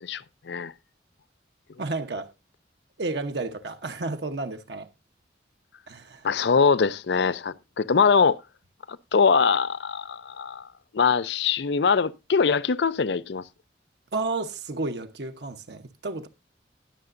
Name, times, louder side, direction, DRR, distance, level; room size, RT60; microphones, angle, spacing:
voice 1, 0.0-0.7 6.2-8.4 8.9-10.7 10.9-13.4, left 5 dB, 65° left, 0.5 m, -23 dB
voice 2, 1.8-2.3 3.0-4.9 5.9-6.3 14.1-16.3, right 3 dB, 60° right, 0.9 m, -31 dB
20.0 x 6.8 x 2.5 m
head